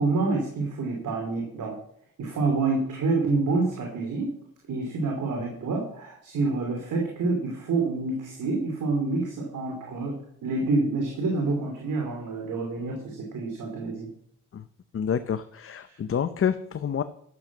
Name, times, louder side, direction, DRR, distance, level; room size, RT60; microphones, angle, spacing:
voice 1, 0.0-1.8 2.2-4.3 4.7-14.1 15.9-16.0, right 3 dB, 70° right, 1 dB, 3.0 m, -27 dB
voice 2, 14.9-17.0, left 8 dB, 45° left, 11 dB, 0.7 m, -28 dB
12.0 x 7.9 x 6.0 m, 0.65 s
cardioid pair, 75°, 32 cm